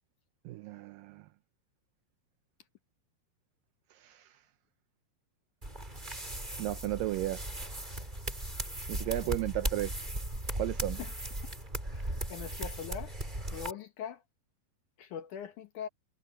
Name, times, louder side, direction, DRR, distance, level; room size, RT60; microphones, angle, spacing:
voice 1, 0.5-1.3 3.9-4.4 6.6-7.4 8.9-9.9 10.6-11.0, right 15 dB, 80° right, 2.0 m, -34 dB
sound 1, 5.6-13.7, right 1 dB, 10° right, 5.0 m, -37 dB
voice 2, 11.9-13.1 13.5-14.2 15.0-15.9, left 8 dB, 65° left, 2.4 m, -41 dB
omnidirectional pair, 4.5 m